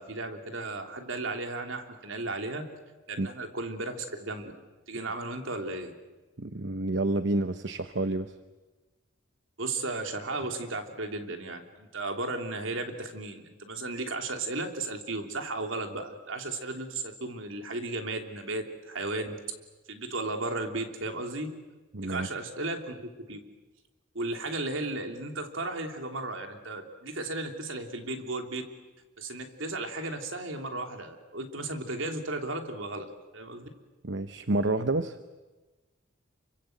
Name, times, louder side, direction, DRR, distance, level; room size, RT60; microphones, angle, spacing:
voice 1, 0.0-2.7 3.1-4.5 4.9-6.0 9.6-11.7 11.9-19.4 19.9-21.5 22.0-23.4 24.1-28.6 29.2-33.1 33.3-33.7, right 2 dB, 80° right, 4 dB, 3.2 m, -35 dB
voice 2, 6.4-8.3 21.9-22.3 34.0-35.2, right 2 dB, 65° right, 10 dB, 0.9 m, -29 dB
29.0 x 24.5 x 7.9 m, 1.2 s
head